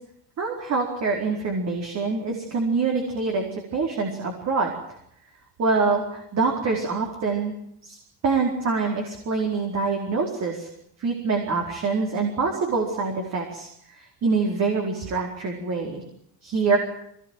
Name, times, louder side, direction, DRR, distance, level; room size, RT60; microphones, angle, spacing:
voice 1, 0.4-3.4 3.7-4.7 5.6-7.5 7.8-8.0 8.2-10.7 11.0-16.0 16.4-16.8, right 4 dB, 35° right, 2 dB, 4.6 m, -25 dB
25.0 x 20.0 x 9.3 m, 0.73 s
cardioid pair, 175°, 46 cm